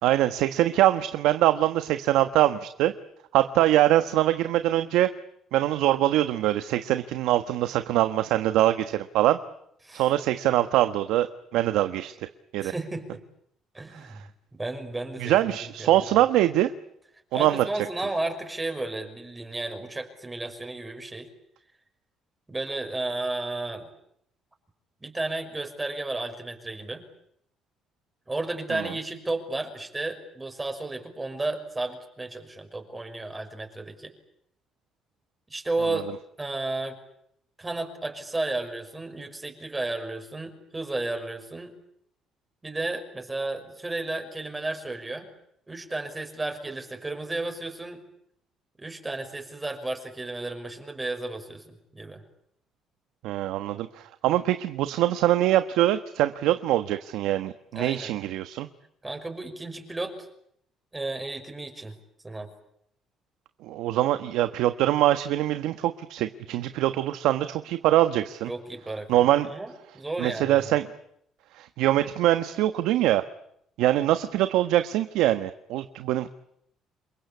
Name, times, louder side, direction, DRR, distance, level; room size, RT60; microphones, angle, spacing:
voice 1, 0.0-2.9 3.3-5.1 5.5-9.4 9.9-11.3 11.5-12.3 12.5-12.7 13.9-14.2 15.2-16.7 17.3-17.7 28.7-28.9 53.2-58.7 63.6-68.5 69.1-69.5 70.2-70.9 71.5-73.2 73.8-76.3, right 14 dB, 85° right, 10 dB, 1.3 m, -23 dB
voice 2, 12.6-13.2 13.7-14.2 14.6-15.4 15.8-16.0 17.3-21.3 22.5-23.9 25.0-27.0 28.3-34.1 35.5-36.1 36.4-37.0 37.6-41.7 42.6-45.3 45.7-48.0 48.8-52.2 57.7-58.1 59.0-60.2 60.9-61.9 62.2-62.5 68.5-70.6, right 2 dB, 15° right, 5 dB, 5.9 m, -33 dB
28.5 x 23.0 x 8.4 m, 0.72 s
cardioid pair, 120°, 0 cm